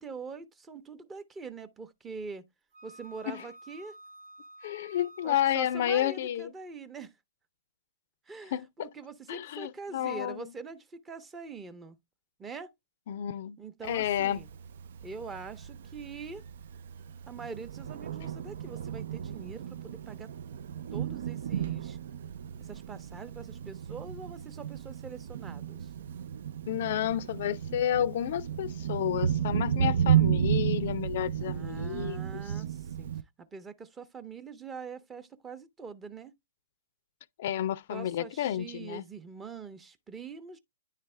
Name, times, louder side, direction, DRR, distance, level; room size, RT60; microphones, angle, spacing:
voice 1, 0.0-2.4 2.8-4.0 5.2-7.1 8.3-12.0 12.4-12.7 13.6-14.5 15.0-16.4 17.3-20.3 20.9-22.0 22.6-25.9 31.4-33.1 33.4-36.3 37.9-40.6, right 5 dB, 15° right, 0.7 m, -44 dB
Wind instrument woodwind instrument, 2.7-6.3, right 1 dB, 40° right, 1.0 m, -51 dB
voice 2, 4.6-6.5 8.5-8.9 9.3-10.5 13.1-13.6 13.9-14.4 26.7-32.4 37.4-39.0, left 11 dB, 55° left, 0.5 m, -31 dB
Thunder, 13.9-33.2, right 9 dB, 65° right, 0.4 m, -33 dB
9.8 x 3.3 x 3.2 m
hypercardioid pair, 125°, 0 cm